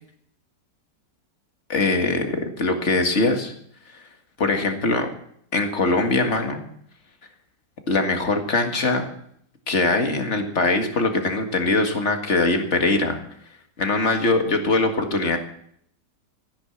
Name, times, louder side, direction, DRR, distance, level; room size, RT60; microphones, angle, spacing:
voice 1, 1.7-3.5 4.4-5.1 5.5-6.6 7.9-9.1 9.7-13.2 13.8-15.4, left 2 dB, 40° left, 5 dB, 2.1 m, -22 dB
14.5 x 10.0 x 7.2 m, 0.66 s
omnidirectional pair, 1.9 m